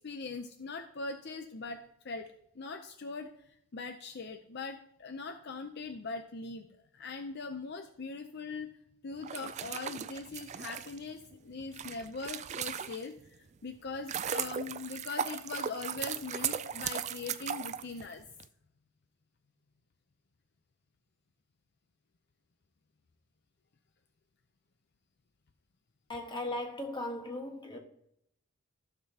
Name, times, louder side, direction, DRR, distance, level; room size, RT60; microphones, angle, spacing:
voice 1, 0.0-6.7 6.9-8.7 9.0-18.2, left 4 dB, 50° left, 0.6 m, -41 dB
sound 1, 9.2-13.3 13.7-18.4, right 8 dB, 35° right, 0.3 m, -37 dB
voice 2, 26.1-27.8, left 1 dB, 20° left, 1.3 m, -37 dB
14.5 x 6.7 x 2.8 m
head